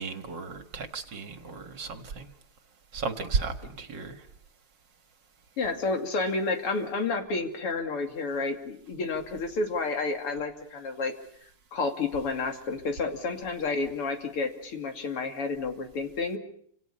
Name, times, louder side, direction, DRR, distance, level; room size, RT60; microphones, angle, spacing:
voice 1, 0.0-2.3 2.9-4.2, right 4 dB, 55° right, 8 dB, 2.3 m, -34 dB
voice 2, 5.6-11.1 11.7-16.4, left 3 dB, 85° left, 5 dB, 3.5 m, -30 dB
29.5 x 26.5 x 5.6 m, 0.65 s
omnidirectional pair, 2.4 m